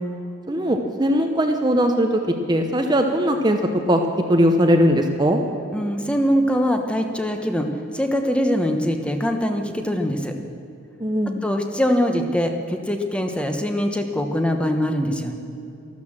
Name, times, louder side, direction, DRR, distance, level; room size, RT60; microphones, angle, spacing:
voice 1, 0.5-2.2 2.5-3.6 3.9-4.0 4.3-5.4 11.0-11.4, equal, 20° right, 4 dB, 0.8 m, -19 dB
voice 2, 5.7-7.7 7.9-10.3 11.4-15.4, equal, 5° left, 5 dB, 1.0 m, -22 dB
13.0 x 13.0 x 7.3 m, 2.8 s
head